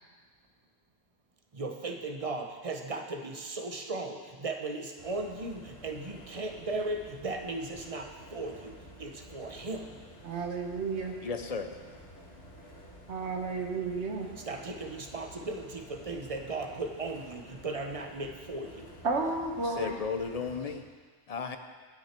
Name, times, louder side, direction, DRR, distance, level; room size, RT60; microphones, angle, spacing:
voice 1, 1.5-9.9 14.4-18.9, right 2 dB, 35° right, 4 dB, 0.9 m, -37 dB
sound 1, 5.0-20.8, equal, 70° left, 2.0 m, -51 dB
voice 2, 10.2-11.1 13.1-14.3 19.0-20.0, right 3 dB, 80° right, 3 dB, 1.5 m, -32 dB
voice 3, 11.2-11.7 19.8-20.8 21.3-21.6, left 5 dB, 40° left, 7 dB, 0.6 m, -34 dB
18.5 x 6.3 x 4.4 m, 1.5 s
omnidirectional pair, 1.1 m